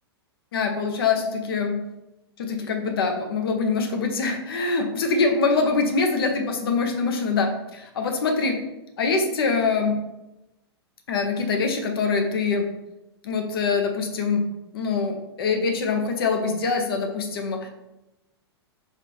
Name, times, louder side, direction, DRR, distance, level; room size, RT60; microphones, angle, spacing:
voice 1, 0.5-1.8 2.4-8.6 9.0-10.0 11.1-12.7 13.2-14.4 14.7-17.7, left 4 dB, 60° left, 4 dB, 0.9 m, -24 dB
4.6 x 3.5 x 3.2 m, 0.94 s
figure-of-eight pair, 105°, 14 cm